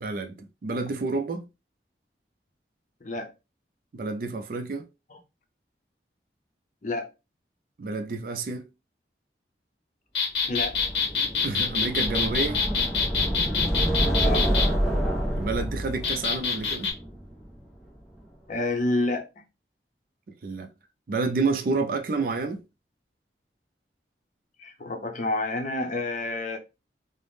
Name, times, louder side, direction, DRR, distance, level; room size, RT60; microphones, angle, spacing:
voice 1, 0.0-1.5 3.9-4.8 7.8-8.7 11.4-12.6 15.4-16.9 20.4-20.7 21.1-22.6, right 3 dB, 50° right, 0.4 m, -29 dB
voice 2, 3.0-3.3 5.1-5.2 6.8-7.1 10.4-10.8 14.2-14.5 18.5-19.3 24.6-26.6, left 2 dB, 45° left, 0.6 m, -29 dB
sound 1, 10.1-14.7 16.0-16.9, left 5 dB, 85° left, 0.7 m, -26 dB
sound 2, 10.5-17.6, right 1 dB, 5° right, 0.6 m, -28 dB
3.4 x 2.0 x 2.5 m
head